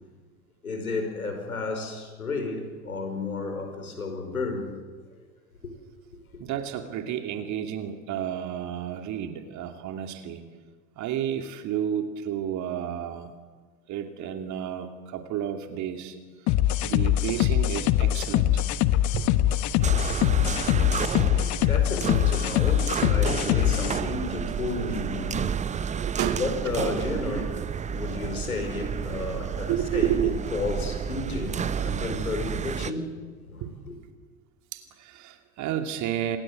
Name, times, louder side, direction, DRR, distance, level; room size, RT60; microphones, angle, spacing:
voice 1, 0.6-4.8 6.3-6.4 20.3-20.4 21.0-33.9, left 3 dB, 85° left, 5.0 m, -33 dB
voice 2, 6.4-10.5 11.0-13.4 13.9-16.2 16.8-18.6 19.1-19.3 25.9-26.4 29.7-30.4 33.6-33.7 34.7-36.4, right 10 dB, 40° right, 2.8 m, -31 dB
sound 1, 16.5-24.0, left 13 dB, 45° left, 1.2 m, -23 dB
sound 2, 19.8-32.9, right 7 dB, 15° right, 0.8 m, -31 dB
27.5 x 19.5 x 7.8 m
figure-of-eight pair, 85°, 42 cm